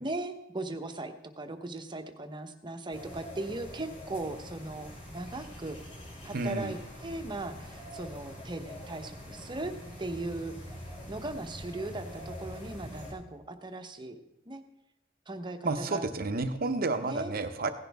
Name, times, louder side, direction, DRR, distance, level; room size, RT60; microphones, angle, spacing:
voice 1, 0.0-5.8 6.2-9.7 10.0-10.6 11.1-14.2 14.5-14.6 15.3-16.1 17.0-17.3, right 2 dB, 25° right, 6 dB, 0.9 m, -38 dB
sound 1, 2.9-13.1, left 1 dB, 40° left, 4.7 m, -44 dB
voice 2, 6.3-6.7 15.6-17.7, right 3 dB, 50° right, 8 dB, 0.8 m, -31 dB
16.5 x 10.5 x 3.5 m, 0.91 s
head